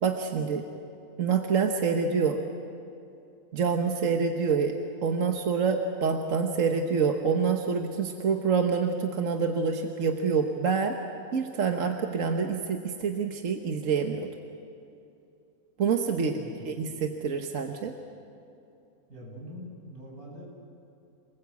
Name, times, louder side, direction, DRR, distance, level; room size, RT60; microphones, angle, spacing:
voice 1, 0.0-0.6 1.2-2.4 3.5-4.7 5.0-10.9 11.3-14.3 15.8-16.4 16.6-17.9, right 5 dB, 60° right, 3 dB, 1.5 m, -26 dB
voice 2, 16.3-16.7 19.1-20.4, equal, 80° right, -3 dB, 8.3 m, -44 dB
27.5 x 20.5 x 8.4 m, 2.7 s
omnidirectional pair, 1.5 m